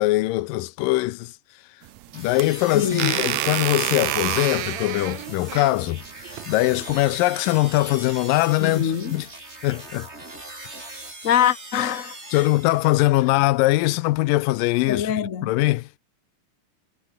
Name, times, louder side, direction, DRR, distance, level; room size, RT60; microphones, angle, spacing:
voice 1, 0.0-1.3 2.1-6.0 6.5-9.3 9.6-10.1 12.3-15.1 15.4-15.9, left 18 dB, 90° left, 2.4 m, -22 dB
sound 1, 1.8-7.1, right 16 dB, 75° right, 1.8 m, -29 dB
sound 2, 2.1-13.3, right 2 dB, 20° right, 4.8 m, -40 dB
voice 2, 2.7-3.2 8.6-9.2 11.2-12.5 14.9-15.5, left 9 dB, 65° left, 0.7 m, -24 dB
omnidirectional pair, 3.8 m